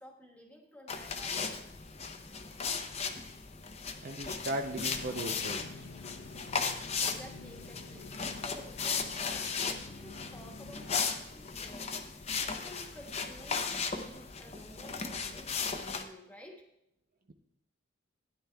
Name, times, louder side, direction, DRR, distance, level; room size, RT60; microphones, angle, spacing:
voice 1, 0.0-1.6 7.0-16.6, left 1 dB, 5° left, 0 dB, 1.4 m, -52 dB
sound 1, 0.9-16.0, left 5 dB, 30° left, 0.7 m, -36 dB
voice 2, 4.0-5.7, right 1 dB, 45° right, 4 dB, 0.6 m, -37 dB
sound 2, 4.7-11.0, left 3 dB, 75° left, 0.9 m, -49 dB
16.0 x 10.0 x 2.3 m, 0.83 s
head